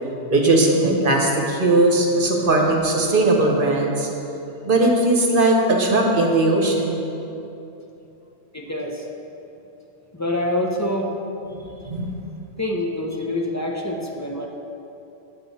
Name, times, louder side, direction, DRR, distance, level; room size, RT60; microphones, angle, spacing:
voice 1, 0.3-4.1 4.6-7.0 11.5-12.1, right 2 dB, 50° right, 0 dB, 1.2 m, -19 dB
voice 2, 8.5-9.0 10.1-11.1 12.6-14.5, left 1 dB, 20° left, 0 dB, 0.6 m, -26 dB
9.1 x 7.5 x 4.1 m, 2.9 s
omnidirectional pair, 1.2 m